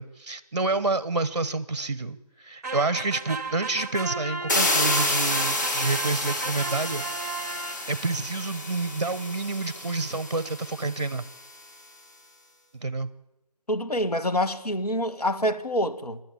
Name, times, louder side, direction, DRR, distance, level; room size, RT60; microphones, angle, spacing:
voice 1, 0.0-7.1 7.9-11.2 12.8-13.1, right 3 dB, 45° right, 0.9 m, -28 dB
sound 1, 2.6-8.2, right 3 dB, 25° right, 1.5 m, -35 dB
sound 2, 4.5-11.3, left 1 dB, 30° left, 3.3 m, -29 dB
voice 2, 13.7-16.2, left 1 dB, 75° left, 1.9 m, -26 dB
28.0 x 12.0 x 8.6 m
figure-of-eight pair, 160°, 20 cm